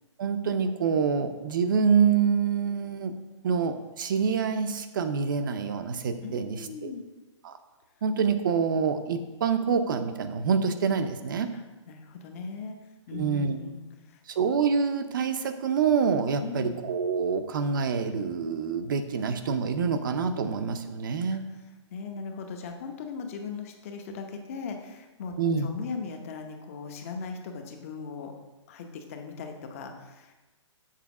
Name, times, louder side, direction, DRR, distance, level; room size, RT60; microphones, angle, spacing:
voice 1, 0.2-3.1 3.4-6.9 7.4-7.6 8.0-11.5 13.1-13.6 14.4-21.4 25.4-25.7, right 6 dB, 40° right, 9 dB, 0.6 m, -26 dB
voice 2, 6.2-7.0 11.5-12.7 13.1-14.2 16.4-16.8 21.3-21.4 21.9-28.3 28.7-30.3, left 5 dB, 30° left, 5 dB, 0.8 m, -38 dB
7.3 x 4.5 x 5.9 m, 1.1 s
hypercardioid pair, 170°, 16 cm